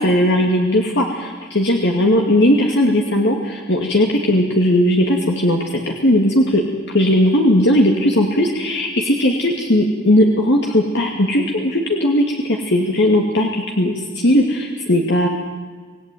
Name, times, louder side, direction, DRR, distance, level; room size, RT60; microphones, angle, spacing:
voice 1, 0.0-15.3, left 1 dB, 55° left, 1 dB, 2.4 m, -17 dB
26.5 x 18.0 x 9.3 m, 1.5 s
head